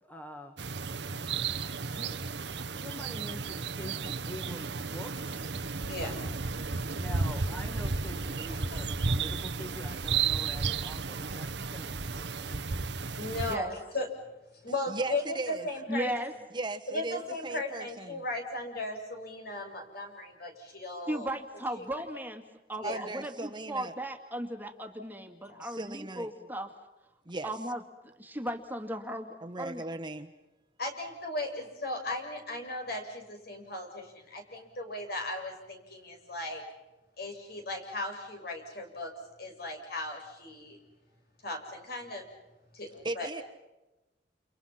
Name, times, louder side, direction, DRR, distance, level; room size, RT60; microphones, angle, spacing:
voice 1, 0.0-0.6 1.9-6.4 6.7-12.6, equal, 10° left, 5 dB, 2.0 m, -46 dB
sound 1, 0.6-13.6, right 4 dB, 70° right, 1.1 m, -33 dB
voice 2, 13.2-14.1 14.6-16.1 16.9-21.3 21.8-21.9 22.8-23.1 25.5-25.6 30.8-36.6 37.2-39.1 39.4-40.8 41.4-42.3 42.7-43.3, left 2 dB, 60° left, 4 dB, 7.1 m, -37 dB
voice 3, 14.9-15.7 16.5-18.2 22.8-23.9 25.6-26.3 27.2-27.5 29.4-30.3 43.0-43.4, right 2 dB, 25° right, 6 dB, 1.4 m, -37 dB
voice 4, 15.9-16.3 21.1-26.7 27.4-29.8, right 1 dB, 10° right, 5 dB, 2.2 m, -36 dB
30.0 x 29.5 x 5.9 m, 1.0 s
head